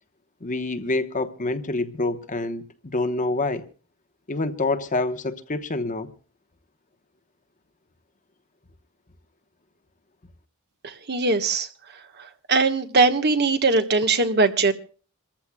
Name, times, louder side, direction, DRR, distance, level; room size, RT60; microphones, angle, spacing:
voice 1, 0.4-3.6 4.3-6.1, left 2 dB, 40° left, 1.1 m, -27 dB
voice 2, 10.8-11.7 12.5-14.7, right 3 dB, 50° right, 1.4 m, -20 dB
28.0 x 14.5 x 2.3 m
head